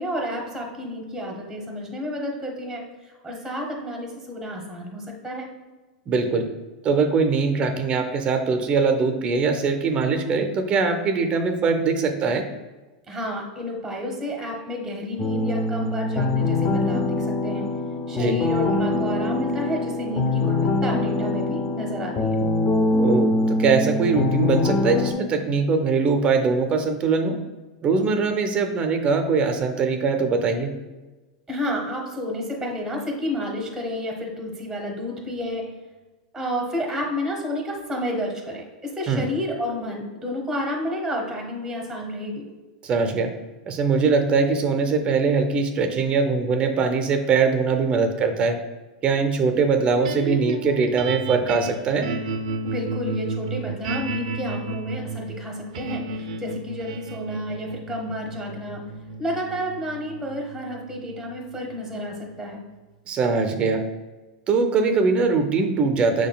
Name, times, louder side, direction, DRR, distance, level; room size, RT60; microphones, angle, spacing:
voice 1, 0.0-5.5 13.1-17.7 18.1-22.4 31.5-35.7 36.3-42.5 52.6-56.0 56.4-58.8 59.2-62.6, equal, 5° right, 0 dB, 0.9 m, -30 dB
voice 2, 6.1-6.5 6.8-12.5 18.1-18.4 23.0-27.4 27.8-30.7 39.1-39.2 42.8-43.3 43.7-48.6 49.0-52.1 63.1-63.8 64.5-66.3, right 4 dB, 30° right, 7 dB, 0.5 m, -22 dB
sound 1, 15.2-25.1, left 2 dB, 30° left, 0.5 m, -23 dB
sound 2, 50.0-62.3, right 3 dB, 75° right, 0.5 m, -32 dB
6.2 x 3.7 x 2.2 m, 1.2 s
supercardioid pair, 125°, 4 cm